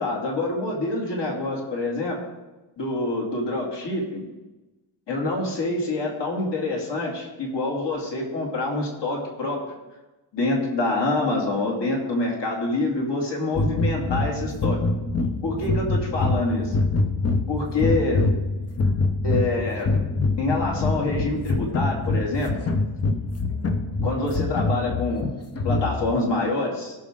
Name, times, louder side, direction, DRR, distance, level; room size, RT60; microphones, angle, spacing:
voice 1, 0.0-2.2 2.8-4.2 5.1-9.6 10.3-14.8 15.4-16.7 17.5-18.2 19.2-19.9 20.4-22.5 24.0-25.3 25.6-26.9, left 2 dB, 60° left, -1 dB, 2.7 m, -26 dB
sound 1, 13.5-26.2, left 2 dB, 30° left, 0.7 m, -25 dB
17.0 x 6.2 x 3.7 m, 1.1 s
wide cardioid pair, 165°, 48 cm